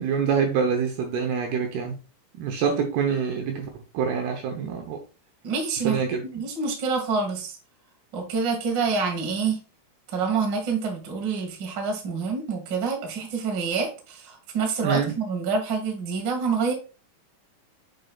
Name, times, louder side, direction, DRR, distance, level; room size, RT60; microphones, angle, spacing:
voice 1, 0.0-2.0 2.3-5.0 5.8-6.5 14.8-15.1, right 6 dB, 75° right, 4 dB, 2.5 m, -26 dB
voice 2, 5.4-6.0 6.3-7.5 8.1-9.6 10.1-16.7, right 5 dB, 60° right, 2 dB, 1.2 m, -27 dB
7.8 x 5.5 x 2.4 m, 0.32 s
omnidirectional pair, 5.4 m